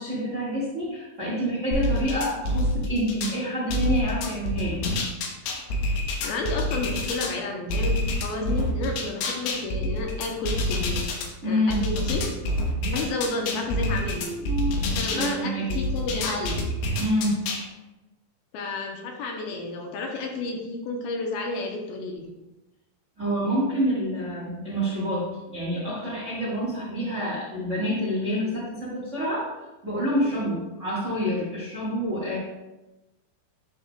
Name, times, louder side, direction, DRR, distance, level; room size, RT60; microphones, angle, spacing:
voice 1, 0.0-4.8 8.4-8.6 11.4-11.9 14.1-14.8 15.1-15.9 17.0-17.4 19.5-19.7 23.2-29.5 29.8-32.4, equal, 80° right, -7 dB, 0.6 m, -27 dB
sound 1, 1.7-3.4 3.7-7.3 7.7-11.3 11.7-15.3 15.7-17.6, left 1 dB, 90° left, 3.1 m, -27 dB
voice 2, 6.2-11.1 11.4-12.2 12.8-14.3 15.0-16.6 18.5-22.3, left 3 dB, 75° left, 1 dB, 2.5 m, -31 dB
10.5 x 6.2 x 2.3 m, 1.0 s
omnidirectional pair, 4.6 m